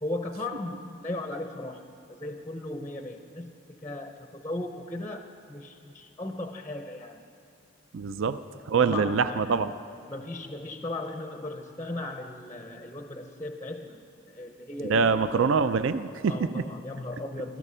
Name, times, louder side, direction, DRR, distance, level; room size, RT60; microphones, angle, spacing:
voice 1, 0.0-7.2 8.7-9.6 10.1-15.5 16.3-17.6, left 2 dB, 15° left, 5 dB, 0.5 m, -37 dB
voice 2, 7.9-8.4 8.7-9.7 14.8-16.3, right 5 dB, 60° right, 12 dB, 0.4 m, -24 dB
17.0 x 13.5 x 5.6 m, 2.6 s
head